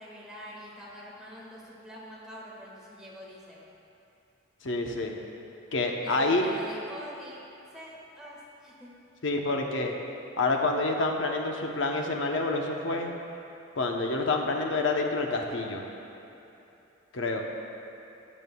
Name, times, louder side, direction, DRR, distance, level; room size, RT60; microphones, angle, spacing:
voice 1, 0.0-3.6 6.0-7.4 7.7-8.9, equal, 5° right, -6 dB, 1.6 m, -45 dB
voice 2, 4.6-5.2 5.7-6.5 9.2-10.0 10.4-13.1 13.7-15.8 17.1-17.4, left 2 dB, 75° left, 2 dB, 0.8 m, -28 dB
13.5 x 9.2 x 2.3 m, 2.9 s
head